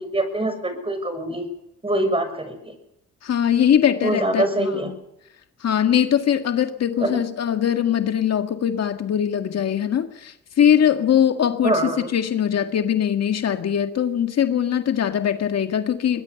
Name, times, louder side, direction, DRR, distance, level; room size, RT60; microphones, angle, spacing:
voice 1, 0.0-1.4 1.8-2.7 4.0-4.9 7.0-7.2 11.6-12.1, right 1 dB, 20° right, 6.8 m, -24 dB
voice 2, 3.2-4.7 5.6-16.2, left 9 dB, 55° left, 1.9 m, -21 dB
21.5 x 21.0 x 7.1 m
cardioid pair, 90°, 30 cm